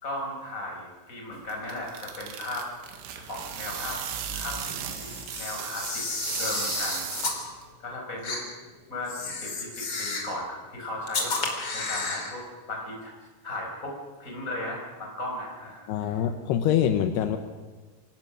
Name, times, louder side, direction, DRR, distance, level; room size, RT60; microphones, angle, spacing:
voice 1, 0.0-2.7 3.3-4.0 4.3-6.0 6.3-7.1 7.8-8.4 8.9-9.1 9.4-11.3 11.7-12.4 12.7-13.1 13.4-16.2, left 1 dB, 15° left, -1 dB, 5.0 m, -36 dB
sound 1, 1.3-7.7, right 8 dB, 85° right, 4.5 m, -36 dB
Camera, 4.8-7.4 8.2-8.4 9.0-10.3 11.1-12.3, left 3 dB, 30° left, 2.8 m, -32 dB
voice 2, 15.9-17.4, left 9 dB, 85° left, 8 dB, 2.3 m, -25 dB
25.5 x 17.0 x 6.2 m, 1.3 s
omnidirectional pair, 6.0 m